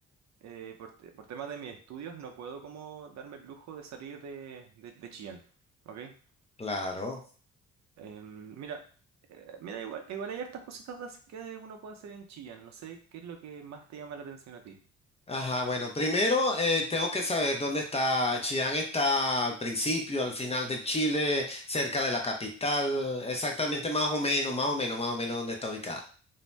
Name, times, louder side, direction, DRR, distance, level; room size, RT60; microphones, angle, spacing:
voice 1, 0.4-5.4 5.8-6.1 8.0-8.8 9.3-14.8, right 7 dB, 65° right, 5 dB, 0.6 m, -42 dB
voice 2, 6.6-7.2 15.3-26.0, left 1 dB, 20° left, 1 dB, 0.6 m, -29 dB
2.6 x 2.1 x 3.2 m, 0.41 s
cardioid pair, 90°, 30 cm